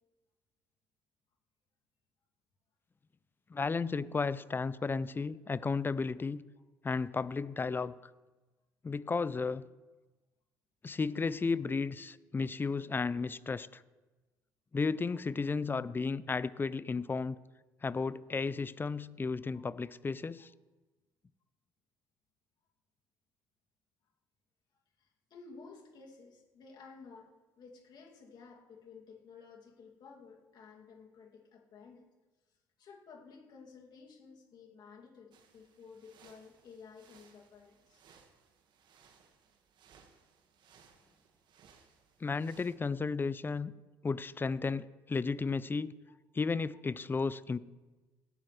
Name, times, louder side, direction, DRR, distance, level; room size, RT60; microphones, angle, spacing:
voice 1, 3.5-6.4 6.8-7.9 8.8-9.6 10.8-13.8 14.7-17.4 17.8-20.5 42.2-43.7 44.0-45.9 46.3-47.6, left 4 dB, 25° left, 18 dB, 0.5 m, -33 dB
voice 2, 25.0-32.0 32.5-38.0, left 5 dB, 55° left, -1 dB, 2.5 m, -54 dB
sound 1, 35.3-42.7, right 6 dB, 60° right, 1.6 m, -64 dB
17.5 x 10.5 x 3.3 m, 1.2 s
hypercardioid pair, 65°, 9 cm